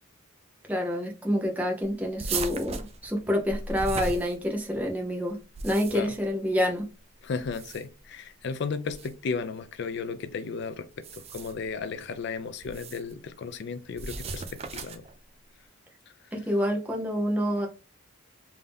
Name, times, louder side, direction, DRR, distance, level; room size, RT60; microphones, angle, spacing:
voice 1, 0.7-5.4 5.6-6.9 16.3-17.7, equal, 5° right, 0.7 m, -27 dB
sound 1, 2.2-4.8 5.4-6.2 7.4-8.0 8.9-9.1 10.9-11.7 12.6-13.1 14.0-15.1, right 4 dB, 30° right, 0.4 m, -36 dB
voice 2, 7.2-10.9 11.1-15.0, left 5 dB, 55° left, 0.4 m, -34 dB
3.5 x 2.7 x 3.4 m
head